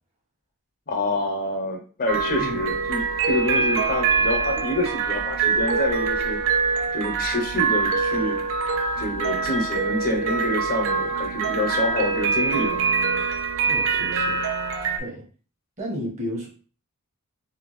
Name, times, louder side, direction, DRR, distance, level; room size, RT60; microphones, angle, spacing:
voice 1, 0.9-6.4 6.9-8.4 9.0-12.8, left 1 dB, 40° left, 3 dB, 0.6 m, -27 dB
sound 1, 2.1-15.0, right 5 dB, 60° right, 0.5 m, -24 dB
voice 2, 2.4-2.7 13.6-14.4 15.0-15.2 15.8-16.5, equal, 35° right, -2 dB, 1.3 m, -33 dB
3.5 x 2.2 x 3.1 m, 0.39 s
head